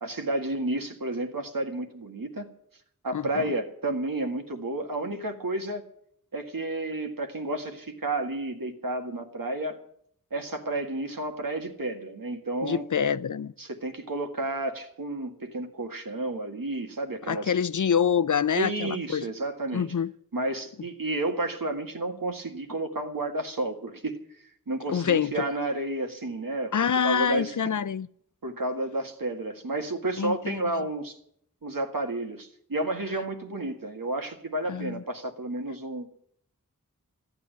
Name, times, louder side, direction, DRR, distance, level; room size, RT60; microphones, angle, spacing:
voice 1, 0.0-2.5 3.0-5.8 6.3-9.8 10.3-12.9 13.6-17.5 18.5-19.9 20.3-24.2 24.7-27.5 28.4-31.2 31.6-36.1, right 2 dB, 90° right, 1.8 m, -31 dB
voice 2, 3.1-3.5 12.6-13.5 17.3-19.3 19.7-20.1 24.9-25.5 26.7-28.1 30.2-30.6 34.7-35.0, left 7 dB, 65° left, 0.6 m, -26 dB
14.5 x 9.8 x 9.0 m
wide cardioid pair, 45°, 33 cm